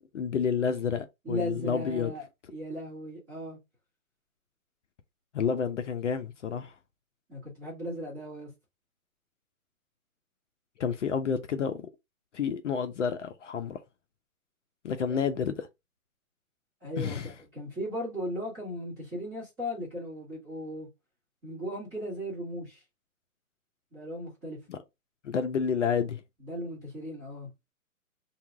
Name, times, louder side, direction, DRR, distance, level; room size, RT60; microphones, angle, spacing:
voice 1, 0.1-2.1 5.3-6.7 10.8-11.8 12.3-13.8 14.8-15.7 17.0-17.3 24.7-24.8 25.2-26.2, left 6 dB, 55° left, 0.5 m, -29 dB
voice 2, 1.2-3.6 7.3-8.5 15.1-15.3 16.8-20.9 21.4-22.8 23.9-24.6 26.4-27.5, equal, 5° right, 0.7 m, -37 dB
2.8 x 2.0 x 3.3 m
hypercardioid pair, 155°, 43 cm